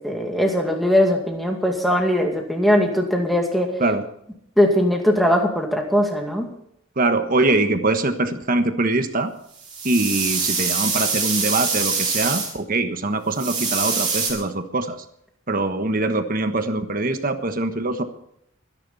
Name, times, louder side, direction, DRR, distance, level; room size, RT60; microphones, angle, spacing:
voice 1, 0.0-3.7 4.6-6.5, equal, ahead, 2 dB, 2.4 m, -20 dB
voice 2, 7.0-9.3 9.8-15.0 15.5-18.0, right 2 dB, 45° right, 8 dB, 1.3 m, -23 dB
sound 1, 9.6-12.5 13.3-14.3, right 4 dB, 25° right, 5.6 m, -24 dB
25.0 x 10.5 x 4.2 m, 0.73 s
head